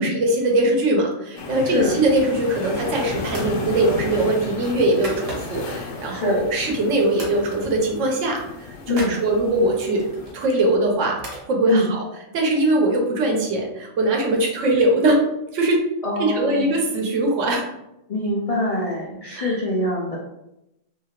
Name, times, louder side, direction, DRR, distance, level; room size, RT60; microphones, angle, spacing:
voice 1, 0.0-10.1 10.3-12.0 12.3-15.2 15.5-15.8 16.2-17.6 19.3-19.6, right 1 dB, 75° right, 1 dB, 1.0 m, -21 dB
sound 1, 1.4-10.3, left 4 dB, 90° left, 1.0 m, -34 dB
voice 2, 1.7-2.0 6.1-6.4 8.9-9.2 11.7-11.9 16.0-16.7 18.1-20.2, left 1 dB, 65° left, -4 dB, 0.3 m, -24 dB
sound 2, 2.5-2.8 3.3-3.6 4.0-5.7 6.2-6.9 7.2-7.4 7.7-7.9 8.1-9.2 10.0-11.5, right 1 dB, 50° right, 1.0 m, -38 dB
2.8 x 2.7 x 2.8 m, 0.87 s
omnidirectional pair, 1.3 m